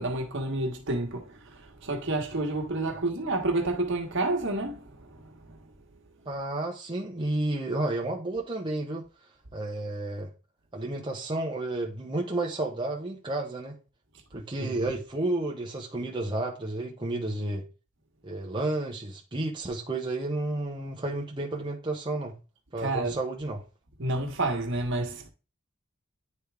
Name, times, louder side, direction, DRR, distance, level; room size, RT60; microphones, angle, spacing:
voice 1, 0.0-5.6 14.6-14.9 22.8-23.1 24.0-25.3, right 2 dB, 60° right, 1.3 m, -30 dB
voice 2, 6.3-9.0 9.5-10.3 10.7-13.8 14.3-17.7 18.2-22.3 22.7-23.6, right 2 dB, 20° right, 0.9 m, -31 dB
9.5 x 3.6 x 3.4 m
head